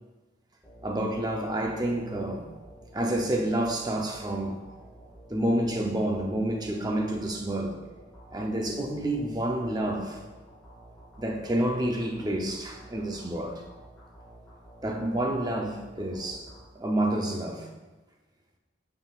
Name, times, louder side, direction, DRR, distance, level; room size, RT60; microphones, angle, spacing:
sound 1, 0.6-17.2, right 1 dB, 10° left, 1.8 m, -51 dB
voice 1, 0.8-2.4 2.9-4.6 5.3-7.8 8.3-10.2 11.2-13.6 14.8-16.5 16.7-17.7, right 1 dB, 20° right, 0.7 m, -29 dB
9.2 x 6.0 x 2.5 m
head